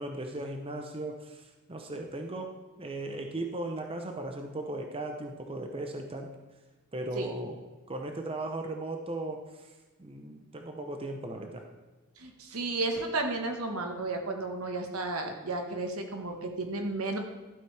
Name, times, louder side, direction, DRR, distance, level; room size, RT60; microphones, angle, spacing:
voice 1, 0.0-6.4 6.9-7.6 7.9-9.7 10.0-11.6, right 2 dB, 25° right, 4 dB, 0.7 m, -37 dB
voice 2, 12.2-17.2, right 2 dB, 75° right, 4 dB, 1.4 m, -33 dB
12.5 x 8.1 x 3.3 m, 1.2 s
head